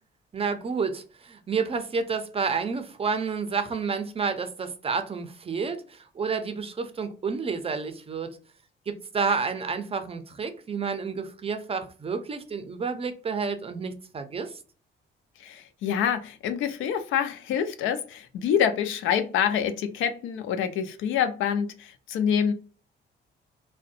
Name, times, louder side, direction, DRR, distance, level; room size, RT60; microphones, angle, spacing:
voice 1, 0.3-8.4 8.9-14.6, right 5 dB, 30° right, 0.5 m, -30 dB
voice 2, 15.4-22.5, left 8 dB, 80° left, 0.4 m, -26 dB
2.5 x 2.1 x 2.5 m
cardioid pair, 90°, 20 cm